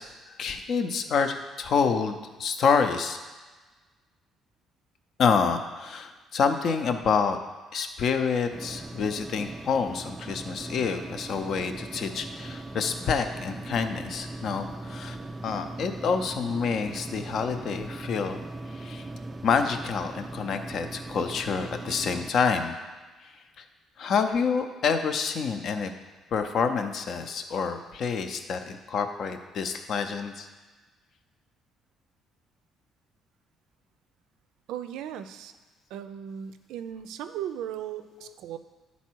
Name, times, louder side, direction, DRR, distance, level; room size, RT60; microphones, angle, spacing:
voice 1, 0.0-3.2 5.2-7.4 7.7-15.2 15.4-18.4 18.7-19.1 19.4-22.8 24.0-25.9 26.3-30.5, left 5 dB, 45° left, 7 dB, 0.5 m, -27 dB
sound 1, 8.5-22.3, right 2 dB, 10° right, 0.3 m, -39 dB
voice 2, 34.7-35.5 35.9-38.6, right 10 dB, 85° right, 10 dB, 0.4 m, -37 dB
10.5 x 4.1 x 4.6 m, 1.3 s
cardioid pair, 170°, 0 cm